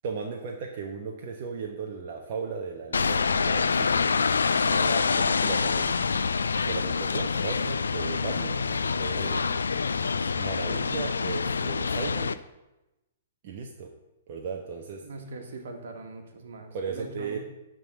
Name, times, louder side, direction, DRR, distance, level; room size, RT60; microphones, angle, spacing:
voice 1, 0.0-4.1 4.6-6.0 6.7-9.4 10.3-12.3 13.4-13.9 14.3-15.0 16.7-17.4, right 5 dB, 50° right, 1 dB, 1.0 m, -36 dB
sound 1, 2.9-12.3, left 5 dB, 90° left, 0.4 m, -26 dB
voice 2, 15.0-17.4, right 3 dB, 70° right, 4 dB, 1.8 m, -41 dB
10.5 x 3.9 x 6.9 m, 0.98 s
hypercardioid pair, 130°, 0 cm